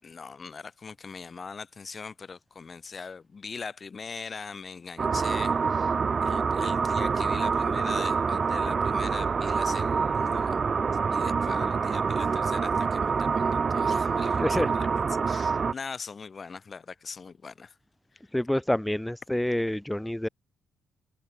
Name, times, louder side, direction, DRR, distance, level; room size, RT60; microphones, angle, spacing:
voice 1, 0.0-5.9 6.2-10.6 11.1-17.7, left 5 dB, 35° left, 7.0 m, -41 dB
sound 1, 5.0-15.7, right 5 dB, 40° right, 0.8 m, -26 dB
voice 2, 14.4-14.7 18.3-20.3, left 1 dB, 5° left, 2.5 m, -27 dB
cardioid pair, 90°, 0 cm